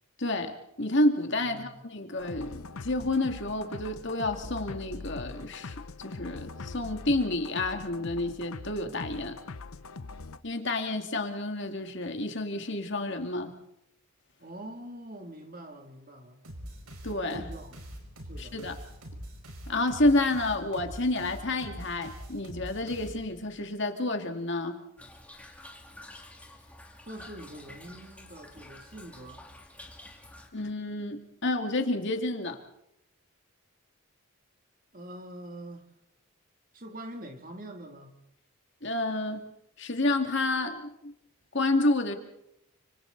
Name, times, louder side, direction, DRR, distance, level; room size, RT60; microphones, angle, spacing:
voice 1, 0.2-9.4 10.4-13.6 17.0-17.5 18.4-18.8 19.7-24.8 30.5-32.6 38.8-39.5 39.8-41.1 41.5-42.1, left 2 dB, 55° left, 2.3 m, -29 dB
voice 2, 1.4-1.8 14.4-16.4 17.3-17.8 18.2-18.6 27.0-29.5 34.9-35.8 36.7-38.2, right 1 dB, 40° right, 2.7 m, -44 dB
sound 1, 2.2-10.4, left 3 dB, 75° left, 0.8 m, -42 dB
sound 2, 16.4-23.6, equal, 90° right, 5.1 m, -44 dB
Toilet flush / Trickle dribble, 25.0-30.5, left 1 dB, 5° left, 2.2 m, -49 dB
29.5 x 26.5 x 4.0 m
head